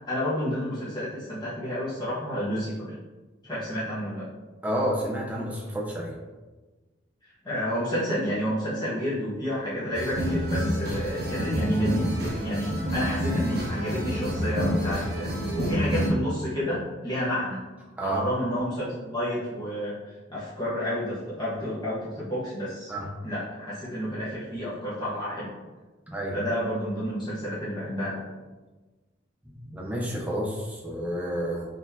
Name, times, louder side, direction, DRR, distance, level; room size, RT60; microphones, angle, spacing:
voice 1, 0.1-2.9 3.4-4.3 7.4-17.6 18.0-19.9 20.3-22.9 23.2-25.5 26.3-28.2, equal, 20° left, -10 dB, 1.1 m, -30 dB
voice 2, 4.6-6.1 18.0-18.2 22.9-23.1 26.1-26.4 29.4-31.7, right 1 dB, 10° right, -4 dB, 0.8 m, -30 dB
sound 1, 9.9-16.1, equal, 55° right, 0.9 m, -28 dB
4.2 x 3.5 x 2.8 m, 1.2 s
head